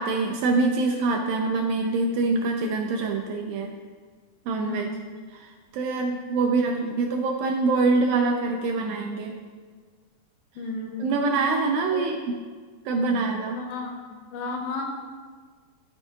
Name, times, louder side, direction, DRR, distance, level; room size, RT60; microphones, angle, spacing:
voice 1, 0.0-3.7 4.5-4.9 5.3-9.4 11.0-12.3 12.9-13.6, right 3 dB, 80° right, 2 dB, 2.1 m, -25 dB
voice 2, 4.6-5.1 6.4-7.0 10.6-11.1 11.9-12.1 13.5-13.9 14.3-14.8, left 3 dB, 80° left, 2 dB, 2.2 m, -33 dB
13.0 x 4.5 x 2.7 m, 1.5 s
omnidirectional pair, 4.6 m